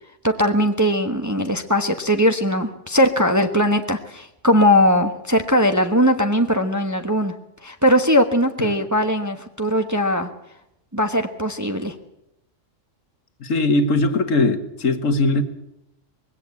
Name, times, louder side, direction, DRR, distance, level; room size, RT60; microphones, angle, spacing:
voice 1, 0.2-7.3 7.6-10.3 10.9-11.9, equal, 15° right, 6 dB, 1.1 m, -19 dB
voice 2, 13.4-15.4, left 2 dB, 85° left, 10 dB, 1.8 m, -20 dB
20.5 x 16.5 x 8.3 m, 0.82 s
omnidirectional pair, 1.3 m